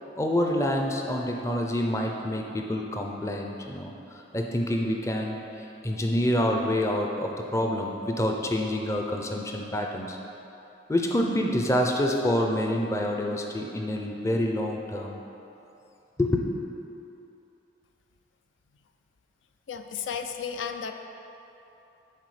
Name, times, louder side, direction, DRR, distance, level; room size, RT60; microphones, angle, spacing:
voice 1, 0.2-5.4 5.8-10.2 10.9-15.2 16.2-16.5, left 1 dB, 15° left, 1 dB, 0.5 m, -27 dB
voice 2, 19.7-20.9, left 7 dB, 75° left, 6 dB, 0.4 m, -33 dB
11.0 x 3.9 x 4.9 m, 3.0 s
head